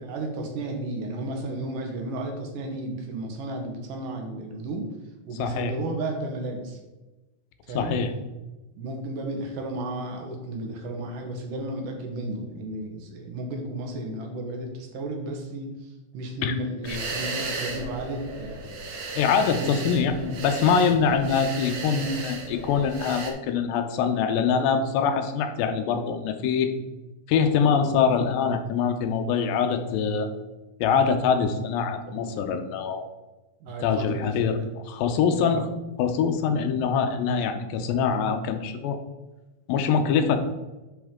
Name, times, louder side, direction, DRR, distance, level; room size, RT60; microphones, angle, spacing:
voice 1, 0.0-4.9 5.3-6.8 7.7-8.0 8.8-18.7 19.4-19.7 20.1-20.4 20.9-21.0 33.6-34.7 35.4-35.6, right 1 dB, 75° right, 2 dB, 2.6 m, -33 dB
voice 2, 5.4-5.7 7.7-8.1 16.4-16.5 16.9-17.0 19.2-20.1 20.4-26.7 27.3-30.3 30.8-33.0 33.8-35.7 36.0-39.0 39.7-40.4, left 6 dB, 90° left, 7 dB, 2.5 m, -24 dB
sound 1, 16.8-23.3, right 3 dB, 90° right, 2.7 m, -35 dB
9.8 x 4.4 x 3.6 m, 1.1 s
omnidirectional pair, 4.0 m